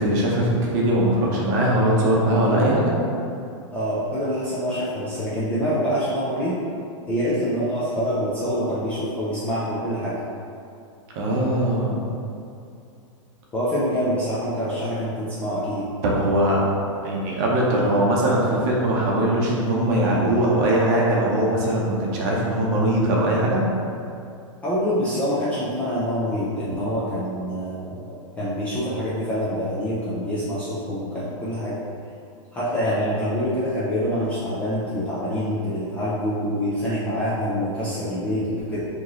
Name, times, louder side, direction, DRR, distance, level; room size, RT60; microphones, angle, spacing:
voice 1, 0.0-2.9 11.2-12.0 16.0-16.6 17.0-23.6, right 1 dB, 30° right, -3 dB, 0.7 m, -21 dB
voice 2, 3.7-6.6 7.1-10.2 13.5-15.8 24.6-28.0 28.4-31.8 32.5-38.8, equal, 10° left, -11 dB, 0.3 m, -25 dB
4.8 x 3.0 x 3.0 m, 2.5 s
supercardioid pair, 170°, 17 cm